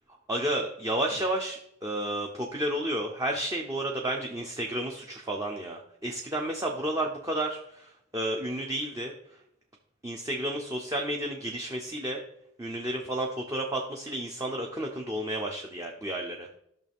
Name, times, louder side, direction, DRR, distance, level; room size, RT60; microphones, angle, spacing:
voice 1, 0.3-9.1 10.0-12.2 12.6-16.5, right 1 dB, 15° right, 1 dB, 0.7 m, -31 dB
12.0 x 6.4 x 3.6 m, 0.75 s
head